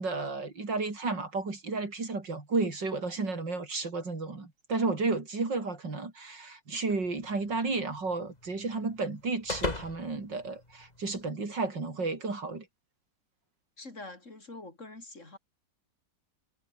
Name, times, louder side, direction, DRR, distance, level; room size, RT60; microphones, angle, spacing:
voice 1, 0.0-12.7, right 3 dB, 90° right, 5.1 m, -32 dB
sound 1, 6.9-11.3, left 2 dB, 20° left, 2.7 m, -41 dB
voice 2, 13.8-15.4, left 2 dB, 45° left, 4.5 m, -45 dB
omnidirectional pair, 1.9 m